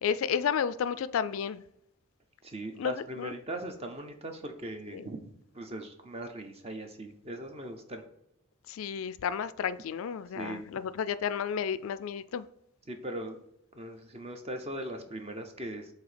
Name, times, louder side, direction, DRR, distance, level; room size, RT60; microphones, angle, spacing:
voice 1, 0.0-1.6 2.8-3.3 4.9-5.0 8.7-12.5, left 7 dB, 70° left, 0.3 m, -32 dB
voice 2, 2.4-5.2 5.5-8.0 10.3-10.6 12.9-13.4 13.7-15.9, right 1 dB, 30° right, 0.7 m, -39 dB
7.6 x 2.7 x 5.1 m
head